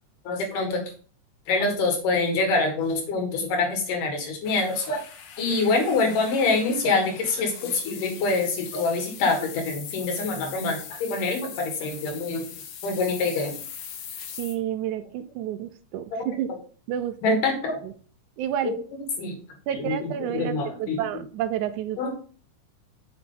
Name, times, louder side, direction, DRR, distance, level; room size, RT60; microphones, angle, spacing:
voice 1, 0.2-0.9 1.5-5.0 5.4-12.5 12.8-13.6 16.1-16.3 17.2-17.8 18.6-18.8 19.2-19.4 19.7-21.0 22.0-22.1, left 3 dB, 80° left, 3 dB, 3.3 m, -25 dB
sound 1, 4.4-14.6, left 8 dB, 65° left, 2.0 m, -41 dB
voice 2, 14.4-16.5 16.9-17.4 17.8-17.9 18.4-18.7 19.7-22.1, right 11 dB, 80° right, 11 dB, 2.0 m, -30 dB
7.5 x 5.8 x 3.8 m, 0.41 s
omnidirectional pair, 3.6 m